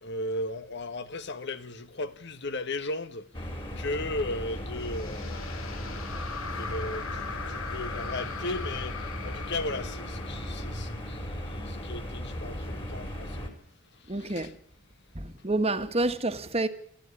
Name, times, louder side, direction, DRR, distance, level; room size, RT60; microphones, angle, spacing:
voice 1, 0.0-3.2 3.8-5.6 6.2-6.3 6.6-13.4 14.2-14.5, left 2 dB, 55° left, 1.3 m, -36 dB
sound 1, 3.3-13.5, equal, 25° left, 4.1 m, -37 dB
sound 2, 4.8-12.1, left 5 dB, 80° left, 2.2 m, -40 dB
voice 2, 14.1-14.5 15.1-16.7, right 2 dB, 30° right, 1.6 m, -28 dB
19.5 x 14.0 x 9.8 m
head